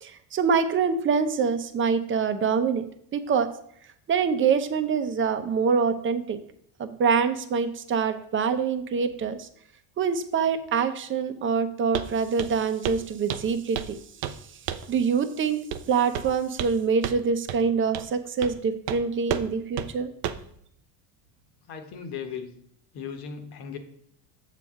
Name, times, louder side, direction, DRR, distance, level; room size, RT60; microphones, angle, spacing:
voice 1, 0.0-2.8 3.1-3.5 4.1-6.4 6.8-9.5 10.0-14.0 14.2-14.4 14.9-15.6 15.9-20.1, right 6 dB, 30° right, 9 dB, 0.7 m, -25 dB
Walk footsteps, 11.9-12.1 12.4-12.6 12.8-13.0 13.3-13.9 14.2-14.4 14.7-14.9 15.7-15.9 16.1-16.8 17.0-17.2 17.5-17.6 17.9-18.1 18.4-18.6 18.9-19.0 19.3-19.5 19.8-19.9 20.2-20.5, right 9 dB, 90° right, 0.7 m, -31 dB
voice 2, 21.6-22.5 22.9-23.8, left 7 dB, 65° left, 6 dB, 1.3 m, -37 dB
7.5 x 7.0 x 3.7 m, 0.67 s
cardioid pair, 125°, 42 cm